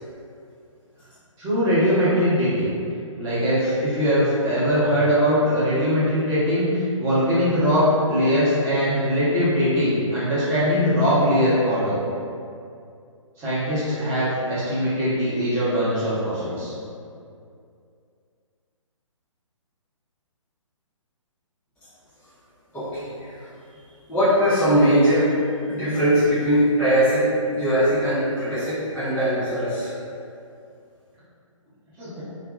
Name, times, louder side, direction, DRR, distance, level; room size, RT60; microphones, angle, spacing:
voice 1, 1.4-2.7 3.2-12.0 13.4-16.7 32.0-32.2, equal, 15° right, -12 dB, 0.8 m, -21 dB
voice 2, 22.7-23.4 24.1-25.3 25.7-29.9, equal, 5° left, -17 dB, 0.4 m, -20 dB
2.7 x 2.4 x 2.3 m, 2.4 s
figure-of-eight pair, 135°, 17 cm